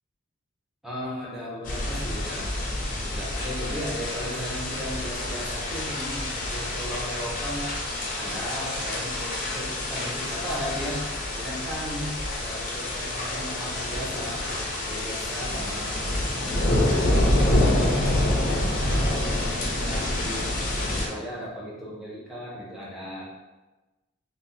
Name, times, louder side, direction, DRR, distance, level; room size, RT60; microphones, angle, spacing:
voice 1, 0.8-2.5 3.0-7.7 8.2-11.0 11.3-14.4 14.8-16.1 16.4-17.6 18.1-18.6 18.9-20.6 20.9-23.3, equal, ahead, -7 dB, 0.7 m, -36 dB
sound 1, 1.6-21.1, left 1 dB, 40° left, 0.5 m, -27 dB
2.6 x 2.2 x 3.8 m, 1.1 s
head